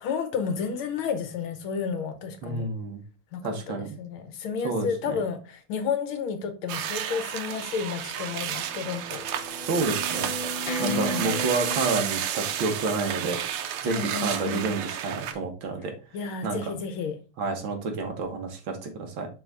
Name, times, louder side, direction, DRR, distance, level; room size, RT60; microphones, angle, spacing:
voice 1, 0.0-2.7 3.3-9.2 10.8-11.3 13.8-14.6 16.1-17.2, left 6 dB, 75° left, 7 dB, 1.8 m, -31 dB
voice 2, 2.4-3.0 3.4-3.9 4.6-5.2 9.7-10.3 10.8-13.4 13.8-15.9 16.4-16.7 17.4-19.3, right 3 dB, 70° right, 4 dB, 2.0 m, -29 dB
sound 1, 6.7-15.3, right 10 dB, 90° right, 1.6 m, -31 dB
sound 2, 8.5-12.0, equal, 35° left, 0.8 m, -35 dB
6.0 x 3.9 x 4.6 m, 0.35 s
omnidirectional pair, 2.3 m